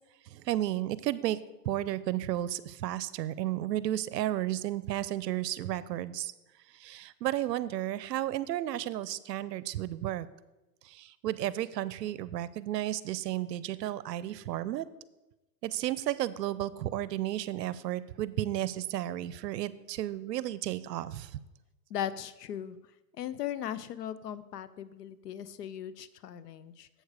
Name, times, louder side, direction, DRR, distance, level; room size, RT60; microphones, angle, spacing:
voice 1, 0.3-1.4 1.6-6.3 6.7-10.3 10.8-14.9 15.6-21.4, right 13 dB, 75° right, 17 dB, 0.6 m, -33 dB
voice 2, 21.9-22.8 23.1-26.9, left 10 dB, 70° left, 16 dB, 0.7 m, -38 dB
7.8 x 6.5 x 4.8 m, 1.0 s
hypercardioid pair, 150°, 50 cm